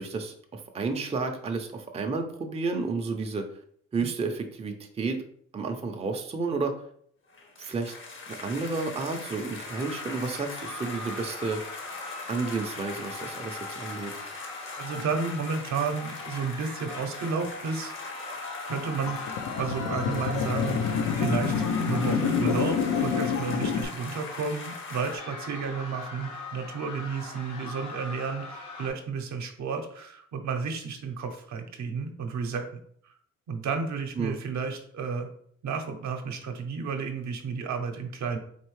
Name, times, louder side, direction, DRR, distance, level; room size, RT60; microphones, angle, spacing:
voice 1, 0.0-3.5 3.9-5.2 5.5-6.7 7.6-7.9 8.3-11.6 12.3-14.1 34.2-34.4, right 4 dB, 20° right, 3 dB, 0.5 m, -31 dB
sound 1, 7.3-25.2, left 3 dB, 40° left, 0.8 m, -41 dB
sound 2, 9.7-28.9, left 3 dB, 90° left, 0.9 m, -41 dB
voice 2, 14.8-17.9 18.6-19.2 19.6-21.5 21.8-32.7 33.5-35.3 35.6-38.4, right 5 dB, 65° right, 5 dB, 0.7 m, -32 dB
sound 3, 19.1-23.8, left 6 dB, 70° left, 0.5 m, -27 dB
4.3 x 2.7 x 3.1 m, 0.62 s
cardioid pair, 90°, 30 cm